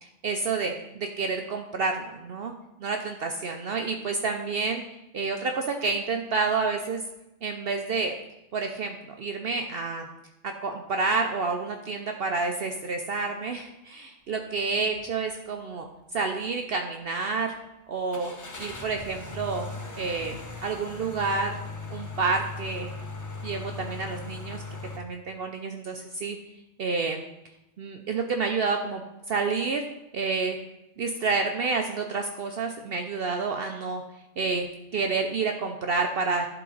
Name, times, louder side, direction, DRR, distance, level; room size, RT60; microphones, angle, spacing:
voice 1, 0.0-2.5 2.8-4.8 5.1-7.0 7.4-8.1 8.5-10.1 10.4-17.5 17.9-18.3 18.6-19.7 20.0-20.4 20.6-21.6 21.9-22.9 23.4-24.6 25.0-26.4 26.8-27.2 27.8-29.9 30.1-30.6 31.0-34.0 34.4-34.7 34.9-36.5, right 4 dB, 60° right, 4 dB, 0.7 m, -29 dB
sound 1, 14.8-15.1 15.5-15.6 18.1-25.0, left 3 dB, 20° left, 0.6 m, -38 dB
11.0 x 3.8 x 3.9 m, 0.93 s
omnidirectional pair, 1.3 m